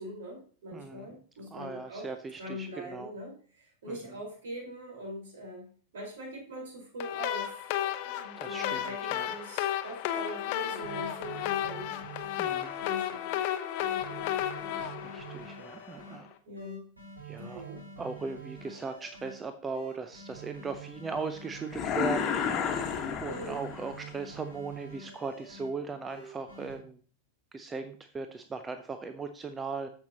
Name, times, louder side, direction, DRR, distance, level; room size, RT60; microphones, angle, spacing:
voice 1, 0.0-2.1 2.4-5.7 5.9-13.5 13.9-14.2 14.7-14.9 16.4-16.8 17.4-17.8 23.3-23.6, equal, 60° right, -2 dB, 4.5 m, -42 dB
voice 2, 0.7-1.1 1.5-3.1 3.9-4.0 8.4-9.3 12.4-12.7 15.0-16.3 17.2-17.6 18.0-22.4 22.9-27.0 27.5-29.9, right 4 dB, 15° right, 9 dB, 0.6 m, -38 dB
sound 1, 7.0-16.1, left 11 dB, 45° left, 0.8 m, -33 dB
sound 2, 10.7-13.0 13.4-16.2 16.6-19.3 19.7-22.5 22.9-25.7 26.1-26.8, right 3 dB, 80° right, 4.2 m, -47 dB
sound 3, 21.7-24.0, left 7 dB, 30° left, 1.4 m, -31 dB
14.0 x 5.9 x 2.9 m, 0.42 s
figure-of-eight pair, 90°, 0 cm